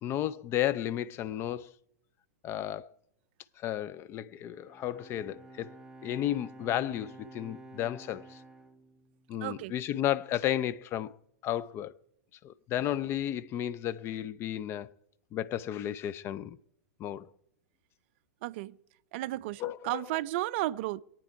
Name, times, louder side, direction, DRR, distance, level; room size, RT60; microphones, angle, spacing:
voice 1, 0.0-1.7 2.4-2.9 3.6-5.7 6.0-8.4 9.3-11.2 11.4-12.0 12.4-14.9 15.3-16.6 17.0-17.3 19.6-20.0, left 11 dB, 30° left, 0.5 m, -33 dB
Bowed string instrument, 4.4-9.8, right 2 dB, 5° right, 1.0 m, -51 dB
voice 2, 9.4-9.7 18.4-18.8 19.1-21.0, right 17 dB, 45° right, 0.4 m, -33 dB
22.5 x 9.0 x 4.6 m
figure-of-eight pair, 100°, 9 cm